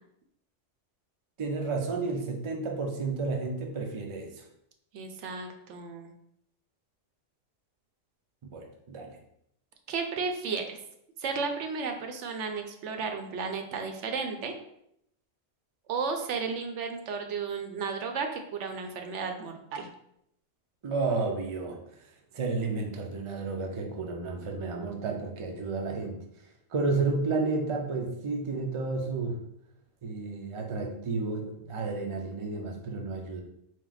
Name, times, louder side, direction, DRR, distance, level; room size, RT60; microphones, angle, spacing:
voice 1, 1.4-4.4 8.4-9.2 20.8-21.8 22.3-26.2 26.7-29.4 30.0-33.4, right 3 dB, 50° right, 2 dB, 0.3 m, -31 dB
voice 2, 4.9-6.1 9.9-10.8 11.2-14.5 15.9-19.9, right 5 dB, 75° right, 5 dB, 0.9 m, -33 dB
4.4 x 2.0 x 3.9 m, 0.74 s
omnidirectional pair, 1.3 m